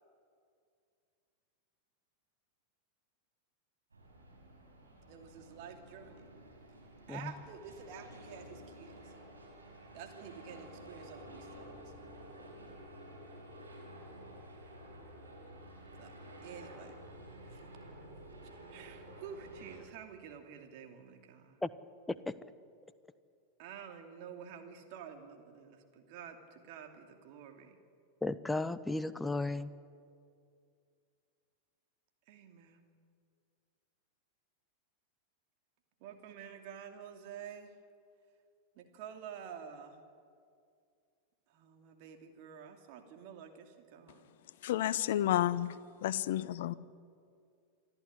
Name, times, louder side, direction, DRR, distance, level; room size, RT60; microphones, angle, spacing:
sound 1, 3.9-19.8, right 1 dB, 80° right, 5.1 m, -52 dB
voice 1, 5.1-6.3 7.1-9.1 9.9-11.9 16.0-17.0 17.5-17.7 18.7-21.6 22.1-22.3 23.6-27.8 32.3-32.8 36.0-37.7 38.7-40.0 41.5-44.4, right 7 dB, 45° right, 2.7 m, -50 dB
voice 2, 28.2-29.7, left 2 dB, 5° left, 0.8 m, -34 dB
voice 3, 44.6-46.7, left 12 dB, 55° left, 0.7 m, -31 dB
27.0 x 12.0 x 10.0 m
figure-of-eight pair, 90°, 0 cm